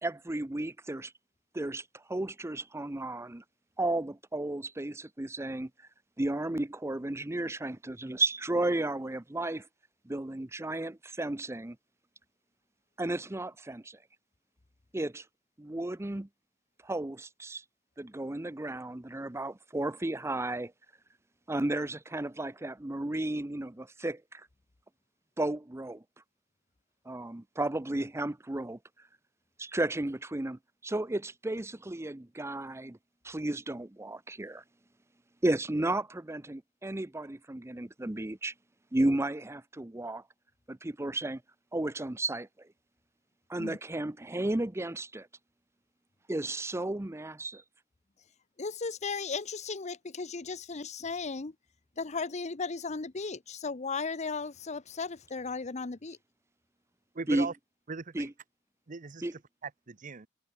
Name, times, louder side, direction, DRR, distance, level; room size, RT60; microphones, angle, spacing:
voice 1, 0.0-1.1 1.5-3.4 3.8-5.7 6.2-9.7 10.1-11.8 13.0-14.0 14.9-15.2 15.6-16.3 16.8-17.6 18.0-20.7 21.5-24.5 25.4-26.0 27.1-28.8 29.6-33.0 33.2-34.6 35.4-38.5 38.9-40.2 40.7-41.4 41.7-42.7 43.5-45.3 46.3-47.6 57.3-57.5 58.1-58.3 59.2-59.3, right 2 dB, 15° right, 0.6 m, -33 dB
voice 2, 48.6-51.5 52.0-56.2, left 4 dB, 35° left, 0.8 m, -36 dB
voice 3, 57.1-57.5 57.9-58.3 58.9-60.3, right 4 dB, 45° right, 0.8 m, -39 dB
head